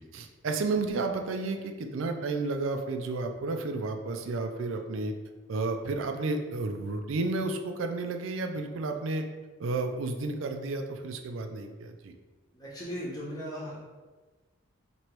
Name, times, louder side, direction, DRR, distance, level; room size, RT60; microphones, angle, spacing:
voice 1, 0.1-5.1 5.5-9.3 9.6-12.1, right 3 dB, 75° right, 5 dB, 0.4 m, -32 dB
voice 2, 12.5-13.8, equal, 20° left, -8 dB, 1.0 m, -37 dB
3.0 x 3.0 x 4.6 m, 1.3 s
head